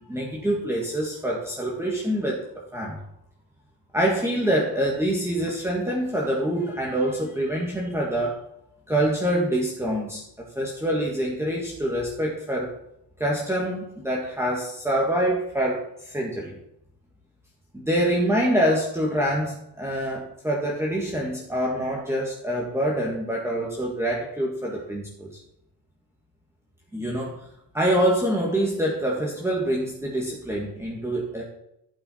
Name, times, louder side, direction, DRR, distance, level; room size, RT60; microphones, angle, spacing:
voice 1, 0.0-3.0 3.9-8.5 8.9-12.8 13.2-16.6 17.7-25.3 26.9-27.5 27.7-31.4, right 1 dB, 5° right, -3 dB, 1.7 m, -26 dB
15.5 x 5.7 x 4.4 m, 0.83 s
cardioid pair, 120°, 40 cm